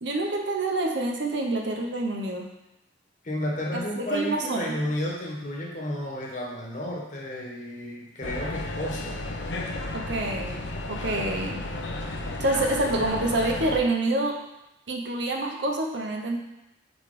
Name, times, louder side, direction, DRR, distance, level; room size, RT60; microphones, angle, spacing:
voice 1, 0.0-2.5 3.7-4.8 9.9-10.5 10.9-11.6 12.4-14.4 14.9-16.4, right 2 dB, 70° right, 1 dB, 0.9 m, -27 dB
voice 2, 3.2-9.2, left 1 dB, 45° left, -2 dB, 1.3 m, -32 dB
sound 1, 8.2-13.8, left 2 dB, 85° left, 0.7 m, -33 dB
4.8 x 4.1 x 4.9 m, 0.90 s
head